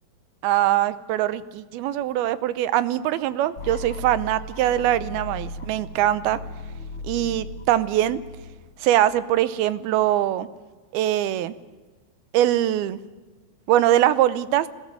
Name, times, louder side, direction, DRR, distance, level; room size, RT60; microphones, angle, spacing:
voice 1, 0.4-6.4 7.0-8.2 8.8-10.5 10.9-11.5 12.3-13.0 13.7-14.7, right 13 dB, 80° right, 15 dB, 2.7 m, -22 dB
sound 1, 3.6-9.5, left 2 dB, 60° left, 1.4 m, -37 dB
20.5 x 17.5 x 9.3 m, 1.3 s
omnidirectional pair, 4.4 m